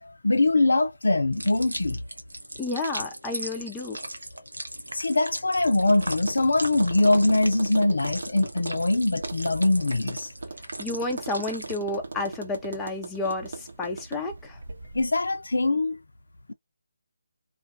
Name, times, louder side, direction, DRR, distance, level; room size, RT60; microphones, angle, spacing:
voice 1, 0.0-2.0 4.9-10.3 14.9-16.0, left 2 dB, 75° left, 0.5 m, -23 dB
sound 1, 1.3-11.8, right 1 dB, 85° right, 0.6 m, -38 dB
voice 2, 2.6-4.0 10.8-14.6, left 2 dB, 10° left, 0.5 m, -31 dB
Tap, 5.8-15.1, right 3 dB, 65° right, 0.9 m, -39 dB
2.5 x 2.3 x 2.4 m
figure-of-eight pair, 155°, 0 cm